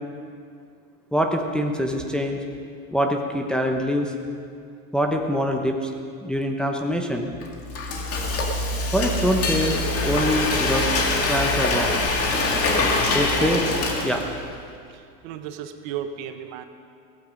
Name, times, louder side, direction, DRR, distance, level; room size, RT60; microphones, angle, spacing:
voice 1, 1.1-2.4 2.9-4.1 4.9-5.9 6.2-7.3 8.9-10.9 11.3-12.0 13.1-13.7 14.0-14.2, equal, ahead, 2 dB, 1.0 m, -24 dB
Frying (food), 7.4-14.5, left 2 dB, 30° left, 2.2 m, -24 dB
voice 2, 12.6-13.0 13.3-13.5 14.9-16.7, right 9 dB, 55° right, 8 dB, 1.3 m, -35 dB
16.5 x 15.0 x 5.3 m, 2.3 s
supercardioid pair, 125°, 43 cm